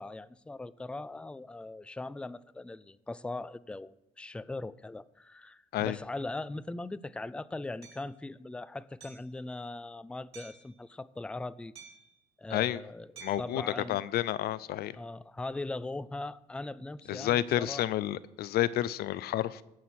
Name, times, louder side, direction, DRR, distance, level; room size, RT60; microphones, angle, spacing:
voice 1, 0.0-11.7 12.4-13.1 13.4-14.0 14.9-17.9, left 2 dB, 5° left, 0.4 m, -40 dB
Hammer, 7.8-8.0 9.0-9.3 10.3-10.7 11.8-12.2 13.2-13.5, right 6 dB, 40° right, 4.4 m, -51 dB
voice 2, 13.2-13.6 13.9-15.0 17.1-19.6, left 13 dB, 70° left, 0.6 m, -30 dB
16.5 x 6.4 x 6.0 m
cardioid pair, 110°, 17 cm